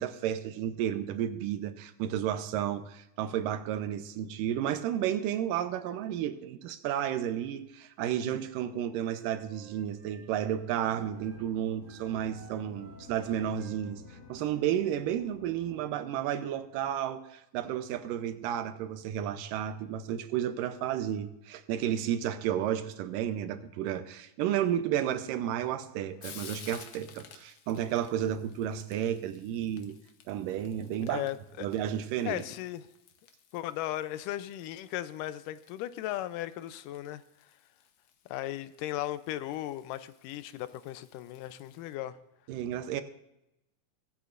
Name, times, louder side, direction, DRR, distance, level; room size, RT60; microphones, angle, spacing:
voice 1, 0.0-14.0 14.3-30.0 30.3-31.2 31.6-32.4 42.5-43.0, right 10 dB, 90° right, 2.4 m, -32 dB
Wind instrument woodwind instrument, 8.2-11.5 11.8-15.2, right 5 dB, 65° right, 3.8 m, -57 dB
sound 1, 10.8-15.9, left 5 dB, 45° left, 1.6 m, -52 dB
Frying (food), 25.0-41.9, left 8 dB, 65° left, 1.7 m, -55 dB
voice 2, 31.1-31.7 32.3-32.9 33.5-37.2 38.3-42.2, left 13 dB, 85° left, 2.2 m, -36 dB
23.0 x 8.1 x 2.5 m
omnidirectional pair, 3.8 m